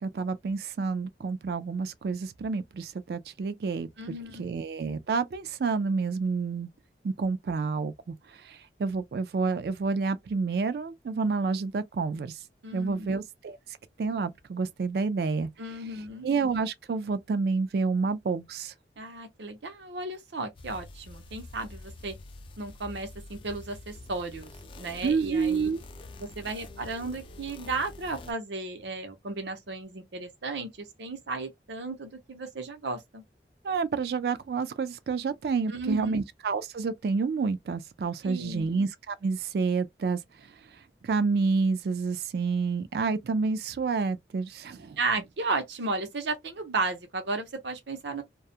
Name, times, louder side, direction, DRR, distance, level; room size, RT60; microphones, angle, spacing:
voice 1, 0.0-3.9 4.4-6.7 7.0-8.2 8.4-12.4 12.7-13.6 14.0-15.5 16.2-18.7 25.0-25.8 33.6-40.2 41.0-45.0, right 4 dB, 60° right, 0.3 m, -29 dB
voice 2, 4.0-4.5 12.6-13.2 15.6-16.3 19.0-22.2 22.6-24.5 24.8-25.7 26.2-33.2 35.7-36.2 38.2-38.7 45.0-48.2, right 3 dB, 85° right, 0.7 m, -34 dB
sound 1, 20.6-28.3, left 2 dB, 30° left, 0.3 m, -46 dB
2.3 x 2.0 x 2.6 m
head